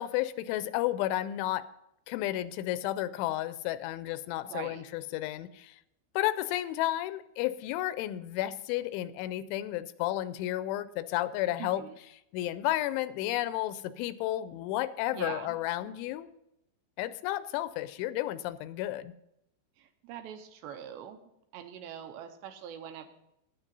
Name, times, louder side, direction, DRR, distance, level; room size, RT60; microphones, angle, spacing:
voice 1, 0.0-1.7 2.1-5.8 6.2-11.9 12.3-16.3 17.0-19.1, left 14 dB, 85° left, 14 dB, 2.9 m, -32 dB
voice 2, 4.4-4.8 11.6-11.9 15.1-15.6 19.8-21.2 21.5-23.1, right 9 dB, 80° right, 7 dB, 2.8 m, -43 dB
9.8 x 9.3 x 5.4 m, 0.82 s
omnidirectional pair, 5.4 m